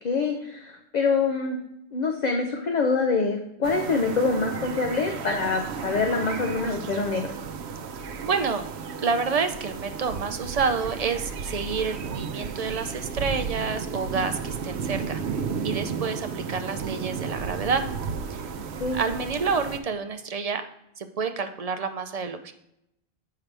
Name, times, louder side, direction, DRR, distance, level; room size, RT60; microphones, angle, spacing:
voice 1, 0.0-1.6 1.9-7.3 18.8-19.0, left 4 dB, 50° left, 3 dB, 0.7 m, -25 dB
sound 1, 3.6-19.8, right 5 dB, 85° right, 0.8 m, -33 dB
voice 2, 8.0-8.6 9.0-17.8 18.3-18.4 18.9-20.6 21.0-22.5, right 5 dB, 45° right, 7 dB, 0.5 m, -29 dB
7.3 x 5.8 x 3.3 m, 0.79 s
omnidirectional pair, 1.1 m